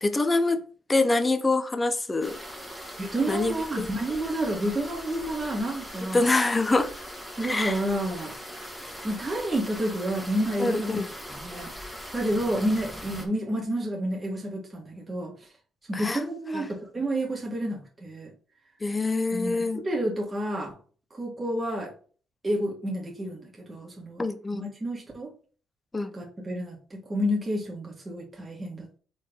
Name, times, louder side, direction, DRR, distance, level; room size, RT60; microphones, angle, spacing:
voice 1, 0.0-0.6 0.9-2.4 3.3-3.9 6.1-6.9 7.4-7.8 10.6-11.1 15.9-16.2 16.5-16.7 18.8-19.8 24.2-24.6 25.9-26.1, left 3 dB, 20° left, 0.8 m, -25 dB
sound 1, 2.2-13.3, equal, ahead, 2.0 m, -40 dB
voice 2, 3.0-6.3 7.4-8.3 9.0-11.0 11.3-11.7 12.1-15.3 15.9-18.3 19.3-20.7 21.1-21.9 22.4-24.2 24.5-25.3 26.1-29.0, right 1 dB, 25° right, 2.3 m, -30 dB
4.9 x 4.2 x 5.2 m
cardioid pair, 90°, 0 cm